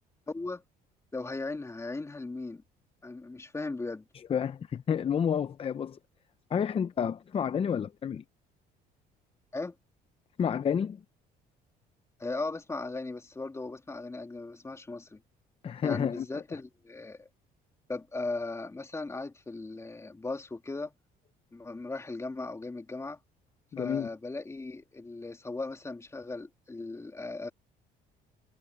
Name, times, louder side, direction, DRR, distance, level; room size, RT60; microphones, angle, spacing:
voice 1, 0.3-0.6 1.1-2.6 3.0-4.0 9.5-9.7 12.2-15.2 15.8-17.3 17.9-20.9 21.5-23.2 23.8-27.5, left 3 dB, 15° left, 3.0 m, -37 dB
voice 2, 4.3-6.0 6.5-8.2 10.4-11.0 15.6-16.4 23.7-24.1, left 7 dB, 35° left, 0.6 m, -30 dB
cardioid pair, 110°, 17 cm